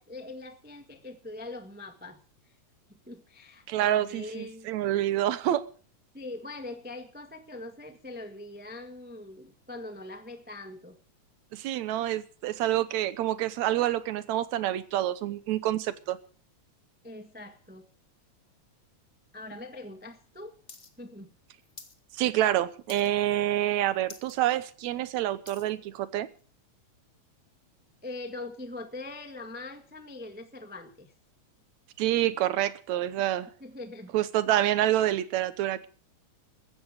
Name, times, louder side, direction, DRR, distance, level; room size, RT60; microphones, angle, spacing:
voice 1, 0.0-2.2 2.9-4.7 6.1-11.0 17.0-17.8 19.3-20.5 21.0-21.3 28.0-31.1 33.6-34.1, left 2 dB, 10° right, 6 dB, 0.6 m, -42 dB
voice 2, 3.7-5.6 11.5-16.2 22.1-26.3 32.0-33.5 34.1-35.9, right 13 dB, 75° right, 14 dB, 2.2 m, -27 dB
sound 1, 20.7-20.9 21.2-22.0 22.3-22.6 22.9-23.3 23.7-23.8 24.0-24.4 24.8-25.7 26.4-26.5, left 3 dB, 25° left, 1.3 m, -48 dB
17.0 x 14.0 x 4.9 m, 0.42 s
omnidirectional pair, 3.3 m